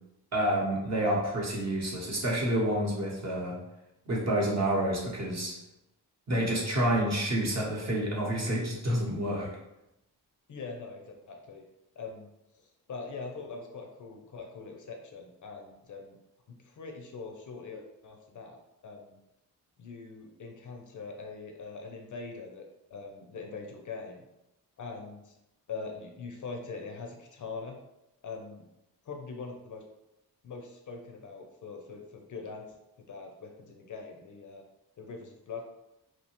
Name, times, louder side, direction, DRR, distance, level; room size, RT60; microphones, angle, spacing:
voice 1, 0.3-3.6 4.1-5.5 6.3-9.5, right 1 dB, 40° right, -3 dB, 0.8 m, -28 dB
voice 2, 10.5-11.6 12.0-12.3 12.6-16.2 16.5-19.2 19.8-22.6 22.9-24.2 24.8-25.4 25.7-27.8 28.2-28.7 29.1-29.8 30.4-34.6 35.0-35.6, left 4 dB, 50° left, 2 dB, 0.4 m, -42 dB
2.8 x 2.1 x 2.8 m, 0.89 s
wide cardioid pair, 105°, 39 cm